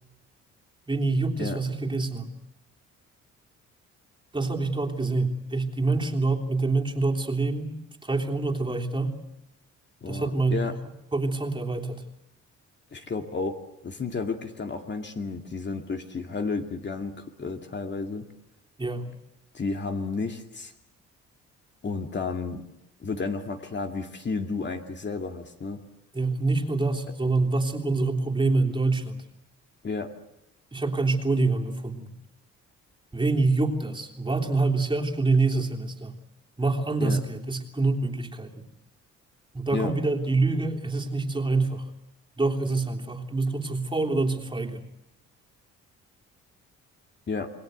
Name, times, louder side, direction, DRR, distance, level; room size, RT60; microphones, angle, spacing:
voice 1, 0.9-2.3 4.3-7.7 8.0-9.2 10.1-10.6 11.1-12.0 18.8-19.1 26.1-29.2 30.7-32.1 33.1-36.1 36.6-38.5 39.5-41.8 42.4-44.8, right 3 dB, 15° right, 1 dB, 3.4 m, -26 dB
voice 2, 10.0-10.7 12.9-13.6 13.8-18.3 19.5-20.7 21.8-22.6 23.0-25.8 29.8-30.1 37.0-37.2 39.7-39.9 47.3-47.5, left 4 dB, 35° left, 5 dB, 2.3 m, -32 dB
28.5 x 20.5 x 8.1 m, 0.84 s
cardioid pair, 90°, 30 cm